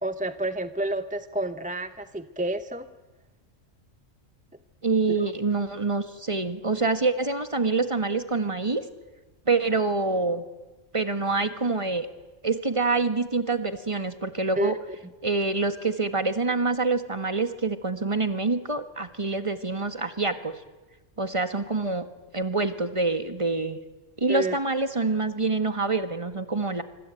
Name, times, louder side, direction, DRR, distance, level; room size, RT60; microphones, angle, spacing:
voice 1, 0.0-2.9 5.1-5.3 14.6-14.7 24.3-24.6, right 1 dB, 10° right, 10 dB, 0.6 m, -29 dB
voice 2, 4.8-8.8 9.5-10.4 10.9-12.1 12.4-14.7 15.2-20.6 21.2-22.1 22.3-23.8 24.2-26.8, right 3 dB, 25° right, 9 dB, 1.7 m, -26 dB
26.0 x 25.0 x 9.1 m, 1.2 s
omnidirectional pair, 1.3 m